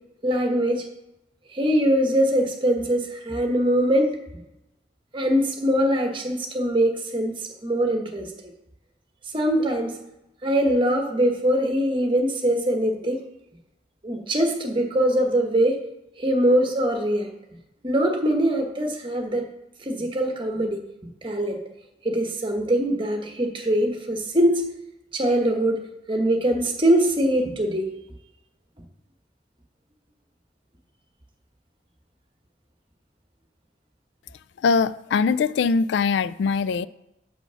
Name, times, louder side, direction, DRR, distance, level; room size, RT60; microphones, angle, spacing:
voice 1, 0.2-0.8 1.5-4.2 5.1-8.3 9.3-9.9 10.4-13.2 14.0-15.8 16.2-17.3 17.8-19.4 19.8-20.8 21.2-21.6 22.0-24.6 25.1-25.8 26.1-27.9, right 1 dB, 25° right, 1.2 m, -22 dB
voice 2, 34.6-36.9, left 5 dB, 75° left, 0.3 m, -22 dB
6.1 x 5.8 x 6.9 m
head